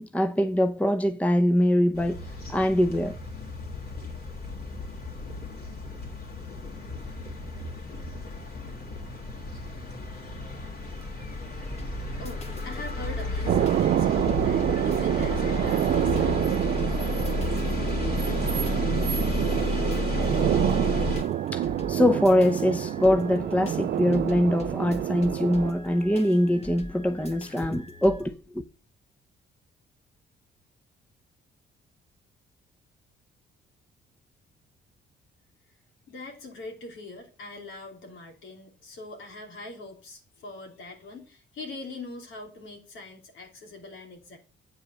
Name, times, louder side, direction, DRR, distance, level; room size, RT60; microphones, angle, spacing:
voice 1, 0.0-2.2 2.5-3.2 21.5-28.3, left 1 dB, 5° left, 0.7 m, -23 dB
sound 1, 1.9-21.2, left 3 dB, 55° left, 3.0 m, -32 dB
sound 2, 11.6-28.2, left 1 dB, 30° left, 2.0 m, -43 dB
voice 2, 12.2-16.4 36.1-44.4, left 2 dB, 80° left, 3.1 m, -42 dB
sound 3, 13.5-25.7, right 11 dB, 50° right, 0.4 m, -27 dB
8.7 x 5.2 x 6.4 m
cardioid pair, 90°, 20 cm